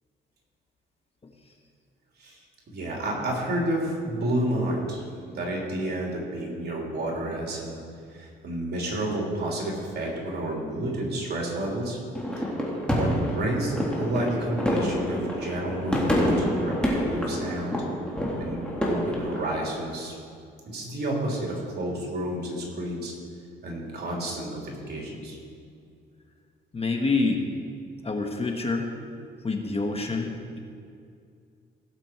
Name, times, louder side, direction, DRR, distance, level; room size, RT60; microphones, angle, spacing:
voice 1, 2.7-5.0 5.3-7.8 8.1-12.0 12.3-12.5 12.9-17.8 18.4-20.1 20.7-23.1 23.6-25.4, right 1 dB, 55° right, -2 dB, 3.3 m, -30 dB
sound 1, 12.1-19.6, equal, 5° left, 2.7 m, -27 dB
voice 2, 26.7-27.5 28.0-28.9 29.4-30.6, left 3 dB, 30° left, 3 dB, 1.3 m, -27 dB
16.5 x 7.2 x 4.6 m, 2.3 s
cardioid pair, 90°, 20 cm